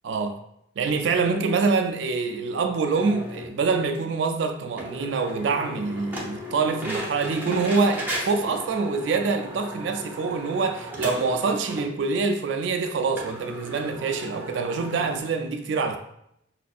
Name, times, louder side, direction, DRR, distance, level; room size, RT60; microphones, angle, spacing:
voice 1, 0.0-0.4 0.8-16.0, right 4 dB, 65° right, 0.3 m, -25 dB
sound 1, 2.9-3.5 3.9-4.0 4.2-4.3 4.8-11.9 12.3-12.4 12.6-12.7 13.2-15.2, equal, 10° right, 0.6 m, -36 dB
5.0 x 2.6 x 2.3 m
head